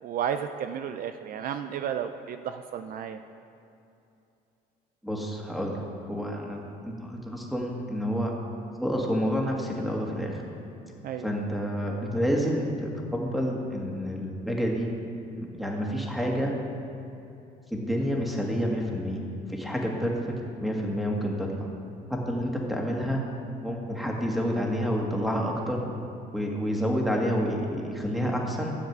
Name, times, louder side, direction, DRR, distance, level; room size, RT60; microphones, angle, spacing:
voice 1, 0.0-3.2 11.0-11.3, right 8 dB, 55° right, 8 dB, 0.5 m, -32 dB
voice 2, 5.0-5.8 6.0-8.3 8.8-10.4 11.2-14.9 15.4-16.5 17.7-19.2 19.5-20.3 20.6-21.7 22.1-23.2 23.6-25.8 26.3-28.7, equal, ahead, -1 dB, 1.9 m, -29 dB
12.5 x 7.3 x 6.0 m, 2.7 s
cardioid pair, 110°, 17 cm